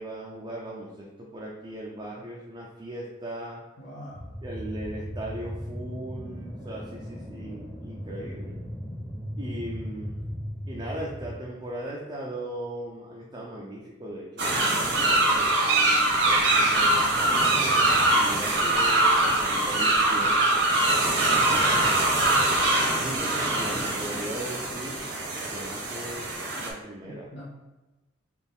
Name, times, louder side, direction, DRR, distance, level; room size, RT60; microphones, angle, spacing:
voice 1, 0.0-3.6 4.4-8.6 9.4-10.2 10.7-17.5 18.1-22.0 22.8-25.0 25.5-26.3 26.6-27.3, right 1 dB, 20° right, -3 dB, 0.4 m, -38 dB
voice 2, 3.8-4.2 23.7-23.9 27.0-27.5, equal, 60° left, -5 dB, 0.6 m, -42 dB
sound 1, 4.1-11.5, equal, 10° left, 0.7 m, -37 dB
sound 2, 14.4-26.7, right 2 dB, 60° right, 0.9 m, -23 dB
4.2 x 2.4 x 3.5 m, 1.1 s
head